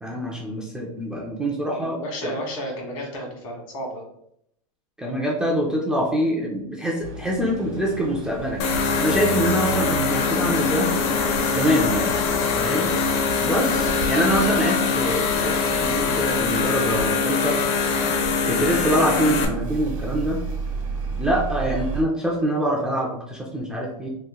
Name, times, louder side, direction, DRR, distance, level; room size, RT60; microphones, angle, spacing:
voice 1, 0.0-2.4 5.0-10.9 11.5-12.2 12.6-12.9 13.4-17.6 18.5-20.4 21.2-24.1, equal, 5° right, -4 dB, 0.3 m, -25 dB
voice 2, 1.7-4.1, equal, 70° left, 0 dB, 1.4 m, -33 dB
sound 1, 7.0-22.0, right 3 dB, 65° right, 1.0 m, -33 dB
sound 2, 8.6-19.4, left 5 dB, 50° left, 0.6 m, -23 dB
3.0 x 2.4 x 3.5 m, 0.74 s
supercardioid pair, 155°, 18 cm